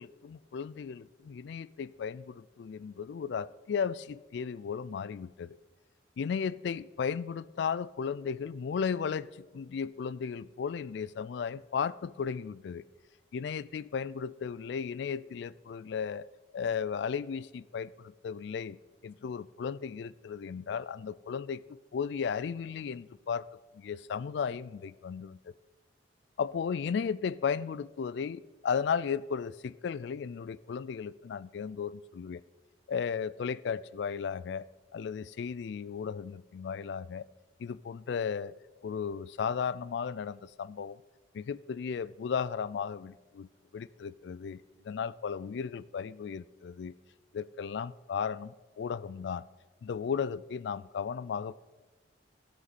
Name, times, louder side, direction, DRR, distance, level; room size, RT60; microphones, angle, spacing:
voice 1, 0.0-5.6 6.2-12.8 13.3-18.8 19.0-21.6 21.9-23.5 23.7-25.5 26.4-32.4 32.9-34.7 34.9-37.3 37.6-38.5 38.8-41.0 41.3-46.9 47.3-49.5 49.8-51.6, left 6 dB, 60° left, 19 dB, 0.3 m, -35 dB
13.0 x 12.5 x 4.1 m, 1.3 s
head